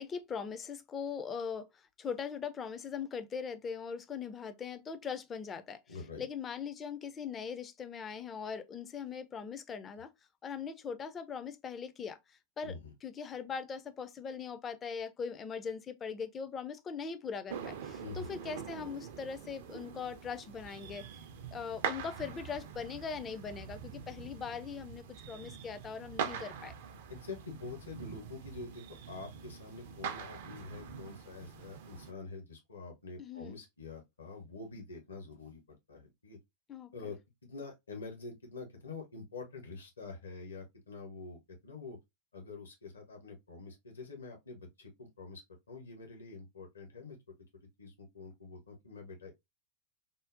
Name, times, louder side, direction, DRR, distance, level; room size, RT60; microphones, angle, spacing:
voice 1, 0.0-1.7 2.0-10.1 10.4-12.2 12.6-12.8 13.0-21.0 21.5-26.7 33.2-33.6 36.7-36.9, left 6 dB, 25° left, 0.4 m, -40 dB
voice 2, 5.9-6.2 12.6-12.9 18.0-18.3 27.1-35.6 35.9-36.4 36.9-42.0 42.3-45.4 45.7-47.2 47.8-49.3, left 3 dB, 70° left, 0.8 m, -46 dB
sound 1, 17.5-32.1, right 7 dB, 55° right, 0.4 m, -44 dB
3.7 x 2.0 x 2.5 m
figure-of-eight pair, 90°, 0 cm